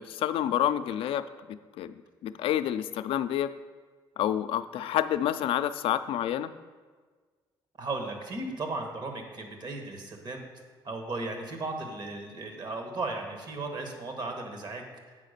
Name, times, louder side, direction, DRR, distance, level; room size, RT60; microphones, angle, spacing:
voice 1, 0.0-1.9 2.2-3.5 4.2-6.5, left 11 dB, 75° left, 12 dB, 0.4 m, -29 dB
voice 2, 7.8-10.4 10.8-14.8, right 2 dB, 50° right, 4 dB, 1.6 m, -36 dB
8.4 x 5.0 x 6.7 m, 1.5 s
cardioid pair, 90°, 9 cm